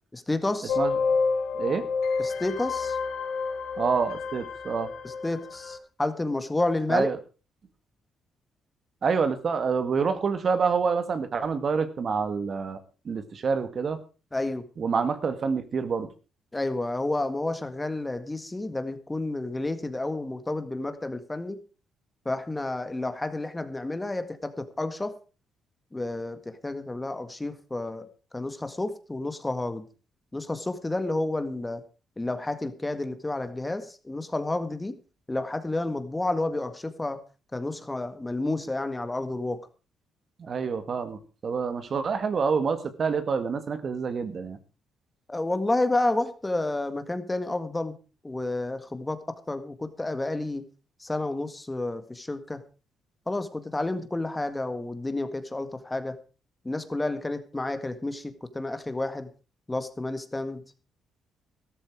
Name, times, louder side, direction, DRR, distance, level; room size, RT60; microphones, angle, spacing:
voice 1, 0.1-0.8 2.2-3.0 5.0-7.1 14.3-14.6 16.5-21.6 22.3-25.2 25.9-28.1 28.3-29.9 30.3-31.8 32.2-34.9 35.3-37.2 37.5-39.6 45.3-48.0 48.2-49.2 49.5-50.6 51.0-52.6 53.3-56.2 56.7-59.3 59.7-60.6, left 2 dB, 15° left, 10 dB, 1.9 m, -30 dB
sound 1, 0.7-5.8, left 4 dB, 85° left, 3.5 m, -29 dB
voice 2, 1.5-1.9 3.8-4.9 6.9-7.2 9.0-12.8 13.1-14.0 14.8-16.1 40.4-44.6, right 5 dB, 50° right, 10 dB, 1.9 m, -27 dB
13.5 x 13.0 x 4.8 m, 0.34 s
cardioid pair, 90°, 0 cm